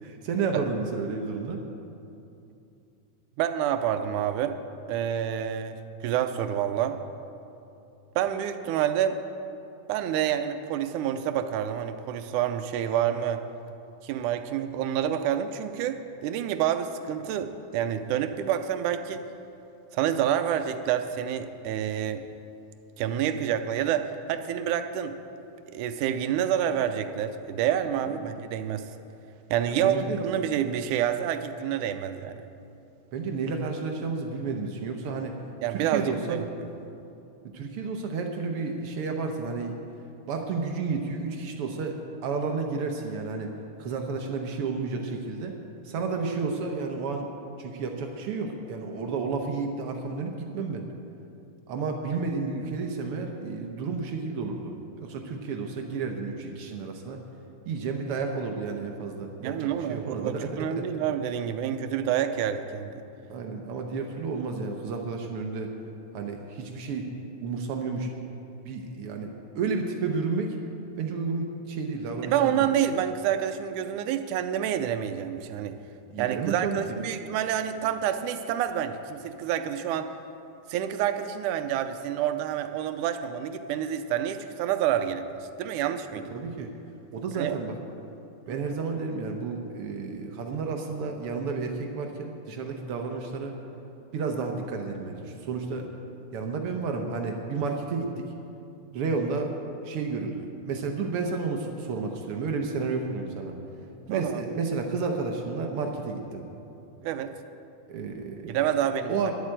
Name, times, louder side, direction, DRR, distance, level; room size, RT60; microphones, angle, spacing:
voice 1, 0.0-1.6 28.2-28.3 29.7-30.2 33.1-35.4 35.7-36.4 37.5-39.8 40.3-42.0 42.2-43.5 43.8-45.6 45.8-47.3 47.6-50.9 51.7-57.2 57.7-60.9 63.3-65.7 66.1-67.1 67.4-68.1 68.6-70.6 71.0-72.7 76.1-77.0 86.3-86.7 87.1-87.8 88.5-93.6 94.1-95.9 96.3-98.2 98.9-99.5 99.8-103.6 104.1-106.4 107.9-108.6 109.1-109.3, right 4 dB, 70° right, 3 dB, 1.3 m, -31 dB
voice 2, 3.4-4.6 4.9-7.0 8.2-9.2 9.9-13.4 14.0-19.2 19.9-22.2 23.0-25.2 25.7-28.9 29.5-32.4 35.6-36.4 59.4-62.9 72.3-75.8 76.2-80.1 80.7-85.3 85.6-86.3 87.4-87.6 88.5-88.7 104.1-104.4 107.0-107.3 108.5-109.1, right 10 dB, 85° right, 9 dB, 2.1 m, -28 dB
11.0 x 8.1 x 8.8 m, 2.7 s
omnidirectional pair, 3.5 m